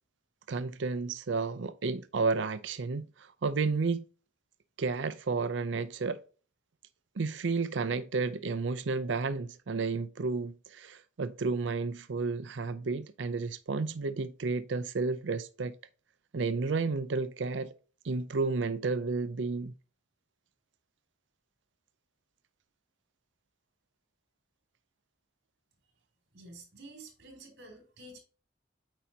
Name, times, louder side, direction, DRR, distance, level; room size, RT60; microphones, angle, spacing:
voice 1, 0.5-4.0 4.8-6.2 7.2-15.7 16.3-17.7 18.0-19.7, right 4 dB, 75° right, 0.5 m, -32 dB
voice 2, 26.3-28.2, right 2 dB, 60° right, 3.2 m, -50 dB
8.8 x 5.2 x 2.8 m
head